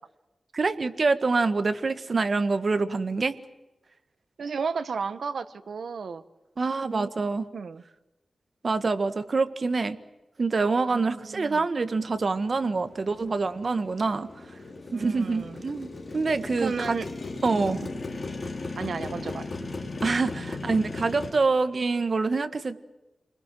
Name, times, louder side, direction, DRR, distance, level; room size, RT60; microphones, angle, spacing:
voice 1, 0.5-3.4 6.6-7.4 8.6-10.0 10.4-14.3 14.9-17.0 17.4-17.8 20.0-22.8, right 3 dB, 50° right, 10 dB, 1.6 m, -26 dB
voice 2, 4.4-6.2 6.9-7.8 10.9-11.7 14.9-15.6 16.6-17.1 17.5-17.9 18.8-19.5, right 5 dB, 80° right, 11 dB, 1.4 m, -34 dB
Motorcycle, 12.0-21.3, left 3 dB, 45° left, 3.9 m, -37 dB
29.0 x 21.0 x 7.7 m, 1.0 s
wide cardioid pair, 110°, 0 cm